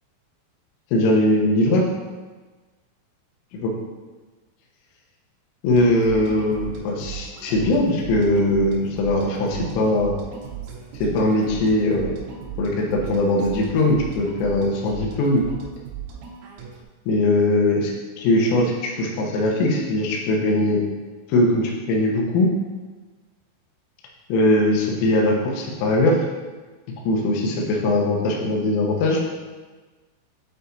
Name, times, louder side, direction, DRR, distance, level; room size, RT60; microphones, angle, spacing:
voice 1, 0.9-1.8 3.5-3.7 5.6-10.2 11.0-12.1 12.6-15.4 17.1-17.9 18.2-20.8 21.3-22.5 24.3-26.2 27.1-29.2, left 1 dB, 85° left, -2 dB, 3.5 m, -20 dB
sound 1, 5.7-16.8, right 8 dB, 80° right, 3.2 m, -37 dB
8.1 x 4.6 x 2.6 m, 1.3 s
omnidirectional pair, 5.8 m